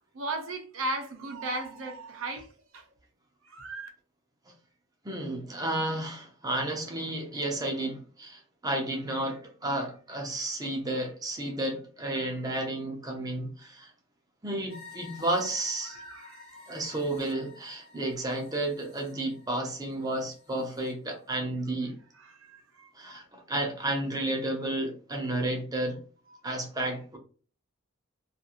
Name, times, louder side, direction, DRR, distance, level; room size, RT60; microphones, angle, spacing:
voice 1, 0.1-2.5 2.7-2.8 3.5-3.9 15.9-16.8 22.2-23.2, right 2 dB, 70° right, 0.6 m, -37 dB
voice 2, 5.0-13.9 14.4-16.0 16.7-22.0 23.0-26.0 26.4-27.2, right 1 dB, 20° right, 0.6 m, -32 dB
sound 1, 14.7-20.9, left 4 dB, 30° left, 0.7 m, -52 dB
2.5 x 2.4 x 2.8 m
head